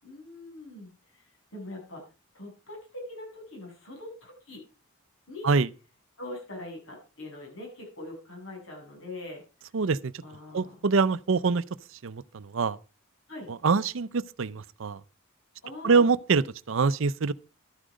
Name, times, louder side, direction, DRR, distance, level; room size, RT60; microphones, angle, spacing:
voice 1, 0.0-2.0 2.3-4.6 5.3-5.5 6.2-9.4 10.2-10.8 13.3-13.5 15.6-16.1, left 2 dB, 65° left, 7.4 m, -42 dB
voice 2, 9.7-10.1 10.5-11.6 12.0-12.8 13.5-15.0 15.8-17.3, right 4 dB, 65° right, 0.5 m, -25 dB
12.5 x 10.0 x 5.1 m
head